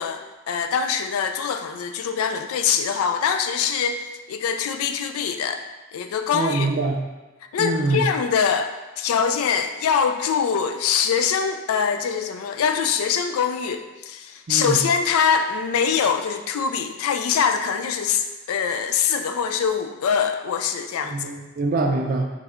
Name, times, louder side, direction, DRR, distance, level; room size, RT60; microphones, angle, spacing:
voice 1, 0.0-4.0 4.3-5.6 5.9-6.7 7.5-21.3, left 7 dB, 80° left, 7 dB, 0.3 m, -23 dB
voice 2, 6.3-7.0 7.6-8.0 14.5-14.8 21.0-22.3, right 3 dB, 40° right, 2 dB, 0.4 m, -24 dB
4.2 x 3.2 x 2.5 m, 1.2 s
head